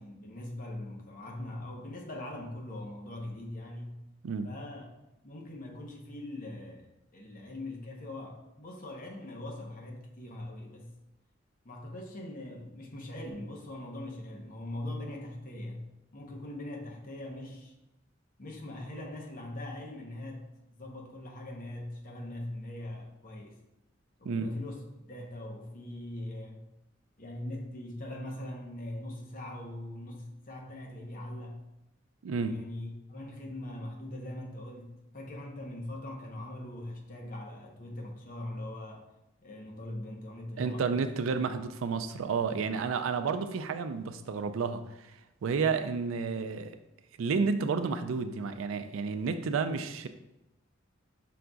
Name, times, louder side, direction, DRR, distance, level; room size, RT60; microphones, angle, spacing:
voice 1, 0.0-4.0 4.4-4.9 5.2-10.9 11.6-15.9 16.1-17.7 18.4-20.5 20.7-23.6 24.2-26.6 27.2-31.6 32.4-39.1 39.4-41.1, left 1 dB, 45° left, 1 dB, 0.8 m, -41 dB
voice 2, 32.2-32.6 40.6-46.8 47.2-50.1, right 5 dB, 90° right, 9 dB, 0.4 m, -31 dB
5.7 x 3.8 x 2.3 m, 0.89 s
head